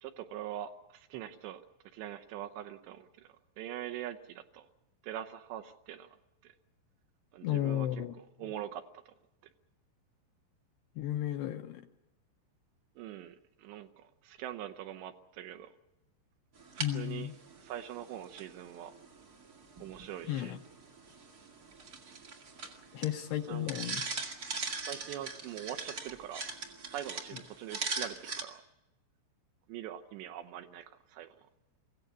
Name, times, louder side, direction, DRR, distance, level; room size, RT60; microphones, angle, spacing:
voice 1, 0.0-1.6 1.9-3.3 3.6-4.7 5.0-6.2 6.4-6.5 7.3-7.9 8.2-9.0 13.0-15.7 16.9-17.3 17.6-18.9 19.8-20.5 22.9-23.0 23.5-23.7 24.8-26.5 26.9-28.6 29.7-31.5, right 11 dB, 75° right, 6 dB, 2.9 m, -43 dB
voice 2, 7.4-8.1 11.0-11.9 16.8-17.3 20.3-20.6 22.9-24.0, left 12 dB, 75° left, 7 dB, 2.6 m, -33 dB
sound 1, 16.6-28.4, right 4 dB, 60° right, 1.0 m, -42 dB
23.0 x 17.0 x 8.3 m, 0.96 s
omnidirectional pair, 5.5 m